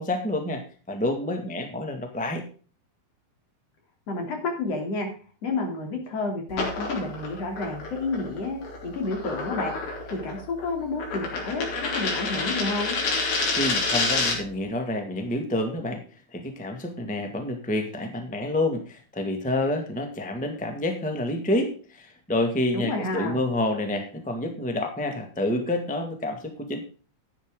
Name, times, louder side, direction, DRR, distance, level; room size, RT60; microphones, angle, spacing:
voice 1, 0.0-2.4 13.6-16.0 16.3-26.8, left 1 dB, 10° left, 5 dB, 0.5 m, -28 dB
voice 2, 4.1-5.1 5.4-9.8 10.1-13.0 22.7-23.4, left 3 dB, 45° left, 3 dB, 3.8 m, -30 dB
sound 1, 6.5-14.6, left 3 dB, 80° left, 5.1 m, -29 dB
12.0 x 9.9 x 3.7 m, 0.39 s
omnidirectional pair, 4.2 m